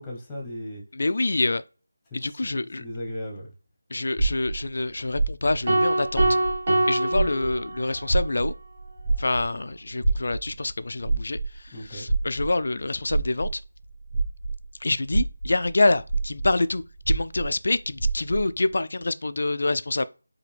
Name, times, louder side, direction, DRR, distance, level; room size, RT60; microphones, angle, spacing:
voice 1, 0.0-0.8 2.2-3.5 11.7-12.1, left 1 dB, 10° left, 1.1 m, -37 dB
voice 2, 0.9-1.6 2.1-2.8 3.9-6.2 6.9-8.5 9.2-13.6 14.8-20.0, left 2 dB, 60° left, 0.4 m, -26 dB
sound 1, 4.2-6.8 7.1-14.6 15.0-18.5, right 3 dB, 15° right, 1.4 m, -27 dB
sound 2, 5.7-8.1, right 1 dB, 40° right, 1.4 m, -24 dB
4.9 x 2.7 x 3.4 m
figure-of-eight pair, 170°, 0 cm